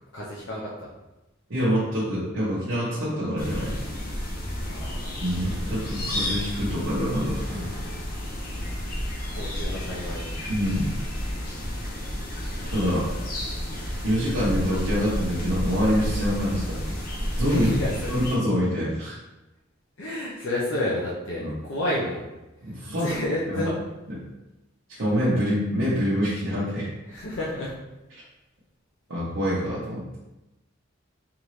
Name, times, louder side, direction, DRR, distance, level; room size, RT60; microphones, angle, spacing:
voice 1, 0.1-0.9 4.6-5.4 9.2-10.3 17.5-18.1 20.0-22.3 22.6-23.8 27.1-27.8, left 1 dB, 70° left, -6 dB, 0.7 m, -30 dB
voice 2, 1.5-3.7 5.2-7.7 10.5-11.0 12.7-13.1 14.0-16.8 17.4-17.8 18.1-19.2 21.4-21.5 22.6-23.1 23.5-23.6 24.9-26.9 28.1-28.2 29.1-30.0, equal, 65° right, -9 dB, 1.1 m, -26 dB
sound 1, 3.4-18.4, equal, 45° left, 0.8 m, -31 dB
4.0 x 3.5 x 3.1 m, 1.0 s
head